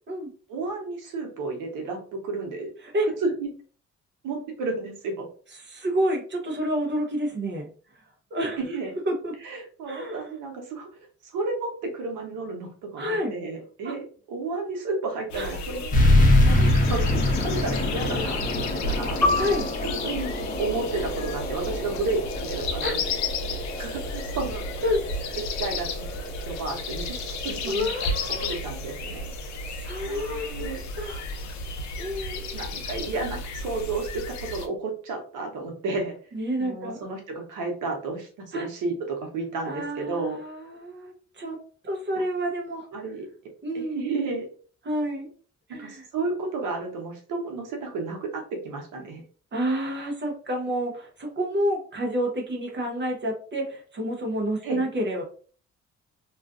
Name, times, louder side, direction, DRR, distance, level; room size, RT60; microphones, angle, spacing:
voice 1, 0.5-2.7 3.2-3.5 4.2-5.3 8.6-8.9 9.4-16.1 16.4-19.4 19.8-23.0 23.8-24.7 25.6-25.9 26.5-27.2 27.4-27.9 28.3-29.6 30.0-30.8 32.5-36.1 36.6-40.4 42.2-42.3 42.9-43.3 43.7-44.5 45.8-49.2 54.6-54.8, right 3 dB, 85° right, 2 dB, 0.9 m, -32 dB
voice 2, 5.7-7.7 7.9-8.6 9.1-9.3 9.9-10.3 13.0-13.3 13.8-13.9 15.4-15.5 18.0-18.4 19.3-19.7 22.8-23.0 24.8-25.0 27.6-28.6 29.7-30.7 30.9-31.2 32.0-32.5 36.3-37.0 38.5-38.7 39.6-41.6 41.8-42.9 43.6-44.0 44.8-45.3 45.7-46.0 49.5-55.2, equal, 35° right, 1 dB, 0.7 m, -29 dB
sound 1, 15.3-34.7, left 3 dB, 65° left, 0.6 m, -33 dB
sound 2, 15.9-31.0, left 1 dB, 25° left, 0.7 m, -26 dB
Piano, 19.2-24.3 24.6-24.8 25.5-25.9, left 2 dB, ahead, 1.0 m, -31 dB
2.4 x 2.3 x 2.4 m, 0.42 s
cardioid pair, 90°, 30 cm